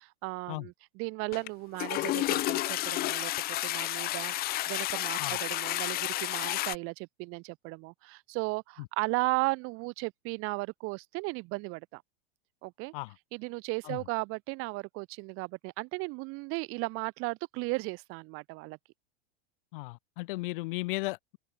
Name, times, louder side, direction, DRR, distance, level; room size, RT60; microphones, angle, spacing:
voice 1, 0.0-3.3 3.6-4.3 4.7-12.0 12.6-12.9 13.3-18.8, right 27 dB, 45° right, 2.2 m, -35 dB
Toilet flush, 1.3-1.5 1.7-6.8, left 16 dB, 30° left, 0.7 m, -31 dB
voice 2, 19.7-21.4, left 22 dB, 60° left, 1.6 m, -35 dB
hypercardioid pair, 125°, 30 cm